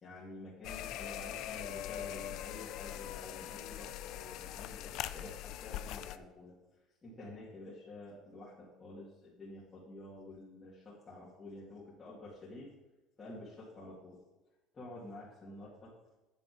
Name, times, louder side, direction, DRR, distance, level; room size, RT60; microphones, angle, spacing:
voice 1, 0.0-6.6 7.0-12.7 13.2-14.2 14.7-15.9, left 1 dB, 20° left, -9 dB, 2.3 m, -49 dB
sound 1, 0.6-6.2, left 12 dB, 50° left, 0.4 m, -42 dB
9.7 x 7.3 x 5.1 m, 1.1 s
cardioid pair, 175°, 0 cm